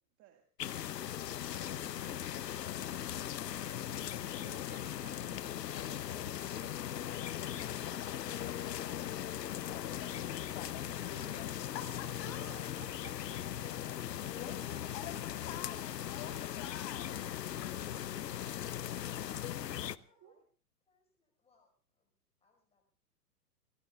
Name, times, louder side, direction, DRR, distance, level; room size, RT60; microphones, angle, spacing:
sound 1, 0.6-20.0, left 11 dB, 85° left, 0.9 m, -39 dB
voice 1, 1.4-6.7 12.2-12.9 13.3-13.6 20.1-20.4, right 10 dB, 25° right, 3 dB, 1.9 m, -59 dB
voice 2, 9.6-12.5 14.4-18.1, left 10 dB, 40° left, 7 dB, 3.8 m, -49 dB
voice 3, 11.8-13.1 18.9-20.4 20.9-22.1 22.4-22.9, left 3 dB, 15° left, 3 dB, 5.1 m, -65 dB
26.5 x 19.5 x 2.4 m, 0.38 s
hypercardioid pair, 130°, 48 cm